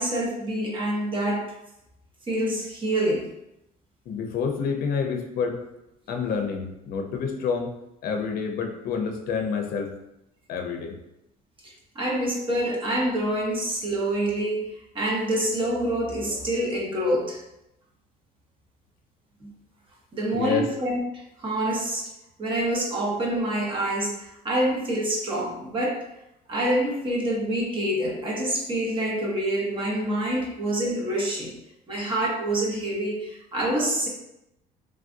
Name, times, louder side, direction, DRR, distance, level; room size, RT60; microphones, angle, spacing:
voice 1, 0.0-1.5 2.3-3.2 11.6-14.6 14.9-17.4 19.4-19.5 20.1-22.0 22.4-26.0 26.5-31.5 31.9-34.1, right 1 dB, 30° right, -2 dB, 0.9 m, -26 dB
voice 2, 4.1-5.6 6.1-7.7 8.0-9.9 10.5-11.0 20.3-20.7, left 6 dB, 65° left, 3 dB, 0.5 m, -28 dB
3.2 x 2.4 x 2.5 m, 0.86 s
cardioid pair, 110°, 17 cm